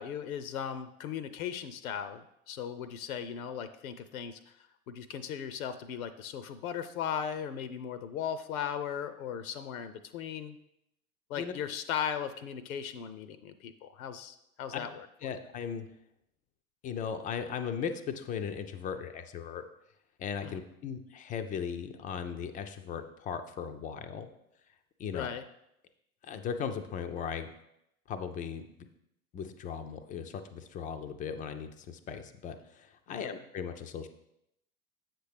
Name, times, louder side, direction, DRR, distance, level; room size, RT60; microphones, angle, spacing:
voice 1, 0.0-4.5 4.9-10.6 11.3-15.1 20.4-20.5 25.1-25.4 33.1-33.3, left 8 dB, 70° left, 12 dB, 0.6 m, -37 dB
voice 2, 15.2-15.9 16.8-19.7 20.2-24.3 25.0-25.3 26.2-27.5 28.1-28.9 29.3-34.1, left 7 dB, 20° left, 8 dB, 0.3 m, -37 dB
7.7 x 5.9 x 3.3 m, 0.79 s
hypercardioid pair, 80°, 43 cm